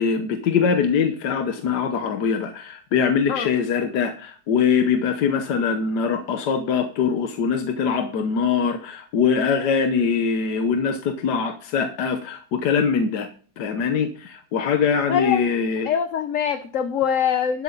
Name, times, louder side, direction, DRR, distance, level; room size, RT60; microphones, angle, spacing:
voice 1, 0.0-13.3 13.6-15.9, left 6 dB, 80° left, 7 dB, 1.6 m, -22 dB
voice 2, 15.1-15.5 15.8-17.6, left 8 dB, 55° left, 9 dB, 1.2 m, -23 dB
12.0 x 11.0 x 4.0 m, 0.42 s
omnidirectional pair, 1.7 m